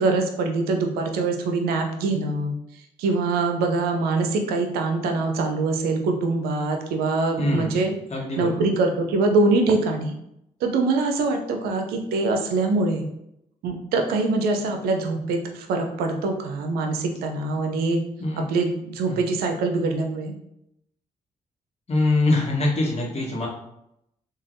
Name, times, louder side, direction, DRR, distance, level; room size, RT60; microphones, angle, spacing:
voice 1, 0.0-2.5 3.0-7.9 8.4-10.1 10.6-13.0 13.6-18.0 18.4-20.3, right 3 dB, 85° right, 4 dB, 0.4 m, -23 dB
voice 2, 7.4-7.8 8.1-8.6 18.2-18.4 19.1-19.2 21.9-23.5, left 2 dB, 45° left, -2 dB, 1.0 m, -23 dB
3.2 x 2.3 x 2.5 m, 0.79 s
supercardioid pair, 50°, 16 cm